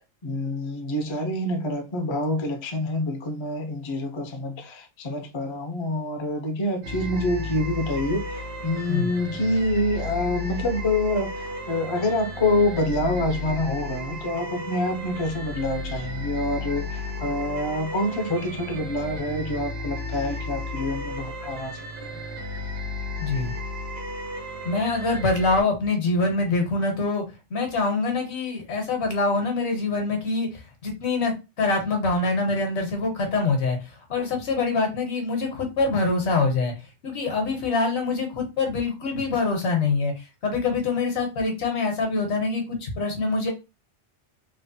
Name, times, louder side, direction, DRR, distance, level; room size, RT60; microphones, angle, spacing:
voice 1, 0.2-21.9, left 1 dB, 45° left, 0.3 m, -27 dB
sound 1, 6.8-25.6, left 2 dB, 75° right, 0.9 m, -34 dB
voice 2, 23.2-23.5 24.6-27.2 27.5-33.8 34.1-36.7 37.0-43.5, left 3 dB, 70° left, 1.1 m, -25 dB
3.2 x 2.1 x 2.6 m
omnidirectional pair, 1.2 m